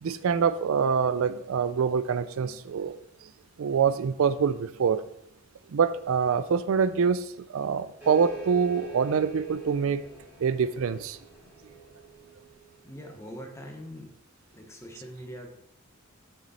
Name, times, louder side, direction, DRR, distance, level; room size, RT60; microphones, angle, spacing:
voice 1, 0.0-3.0 3.6-5.0 5.7-10.0 10.4-11.2, right 6 dB, 70° right, 13 dB, 0.4 m, -25 dB
sound 1, 8.0-13.1, right 7 dB, 10° right, 2.3 m, -45 dB
voice 2, 12.8-14.2 14.5-15.5, equal, 15° left, 3 dB, 1.1 m, -42 dB
6.6 x 6.2 x 4.2 m, 0.80 s
head